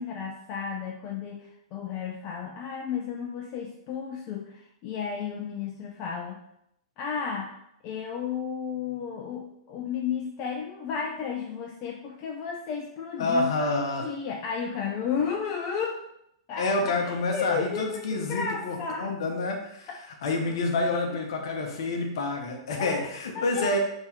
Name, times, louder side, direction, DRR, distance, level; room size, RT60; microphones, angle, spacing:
voice 1, 0.0-6.4 7.0-7.5 7.8-13.7 14.0-16.0 16.5-16.7 17.0-19.1 22.8-23.0 23.3-23.8, left 6 dB, 40° left, 1 dB, 0.5 m, -33 dB
voice 2, 13.2-14.1 16.6-19.9 20.2-23.8, left 2 dB, 65° left, 3 dB, 0.9 m, -28 dB
3.6 x 3.0 x 4.2 m, 0.76 s
hypercardioid pair, 110°, 3 cm